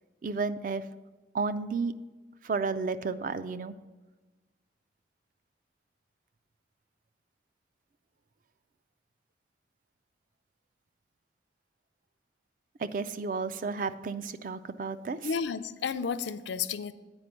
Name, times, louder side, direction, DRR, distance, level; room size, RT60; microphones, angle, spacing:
voice 1, 0.2-0.8 1.3-1.9 2.4-3.7 12.8-15.2, right 4 dB, 45° right, 12 dB, 0.4 m, -32 dB
voice 2, 15.2-16.9, left 6 dB, 80° left, 12 dB, 0.4 m, -32 dB
8.8 x 5.1 x 6.1 m, 1.2 s
head